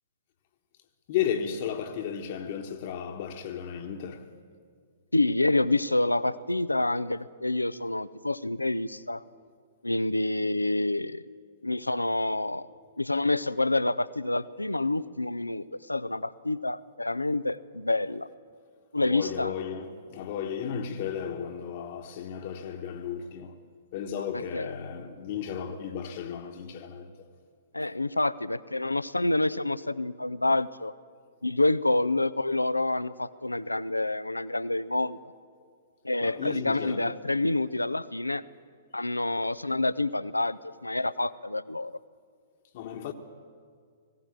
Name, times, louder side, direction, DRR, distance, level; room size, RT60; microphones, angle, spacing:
voice 1, 1.1-4.3 19.0-23.6 23.9-27.1 36.2-37.2 42.7-43.1, left 8 dB, 45° left, 1.2 m, -34 dB
voice 2, 5.1-9.2 9.8-11.2 11.6-12.7 13.0-18.3 18.9-19.5 24.5-24.7 27.7-30.9 31.4-35.2 36.0-38.4 38.9-41.9, left 2 dB, 90° left, 0.5 m, -27 dB
19.5 x 16.0 x 8.9 m
figure-of-eight pair, 110°, 0 cm